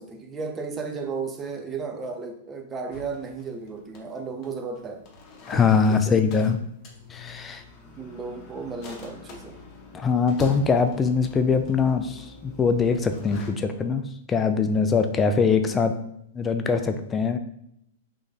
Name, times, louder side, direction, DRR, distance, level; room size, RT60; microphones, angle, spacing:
voice 1, 0.0-5.0 5.9-6.5 8.0-9.6 15.2-15.4, right 4 dB, 25° right, 4 dB, 0.6 m, -34 dB
sound 1, 2.9-13.5, left 3 dB, 40° left, 0.8 m, -43 dB
voice 2, 5.5-6.6 7.1-7.6 9.9-15.9 16.3-17.4, left 5 dB, 20° left, 7 dB, 0.4 m, -22 dB
3.4 x 2.6 x 3.9 m, 0.75 s
hypercardioid pair, 110°, 0 cm